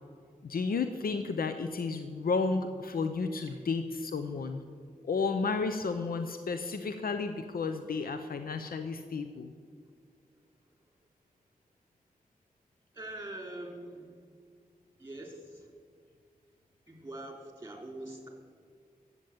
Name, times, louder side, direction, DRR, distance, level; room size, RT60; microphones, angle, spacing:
voice 1, 0.4-4.6 5.0-9.5, left 4 dB, 80° left, 8 dB, 0.7 m, -32 dB
voice 2, 12.9-14.1 15.0-15.7 16.9-18.3, right 1 dB, 20° right, 1 dB, 3.4 m, -43 dB
13.5 x 8.2 x 9.0 m, 2.1 s
wide cardioid pair, 80°, 15 cm